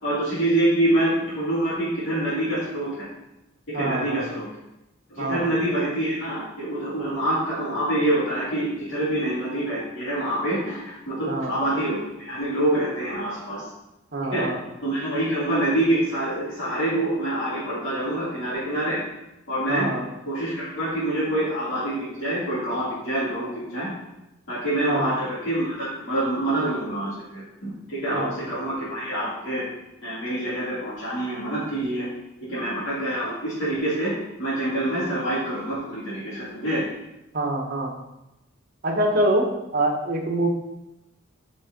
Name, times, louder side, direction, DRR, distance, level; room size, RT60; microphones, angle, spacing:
voice 1, 0.0-3.1 3.8-4.5 5.1-13.7 14.3-14.5 14.8-19.0 19.5-19.9 20.3-23.9 24.5-29.6 30.0-32.1 32.5-34.1 34.4-36.8, right 1 dB, 60° left, -12 dB, 3.1 m, -26 dB
voice 2, 3.7-4.2 5.2-5.4 11.3-11.5 14.1-14.6 19.7-20.1 24.9-25.1 28.1-28.3 37.3-37.9 38.8-40.5, right 1 dB, 45° right, 1 dB, 1.5 m, -25 dB
6.6 x 5.7 x 5.4 m, 0.93 s
head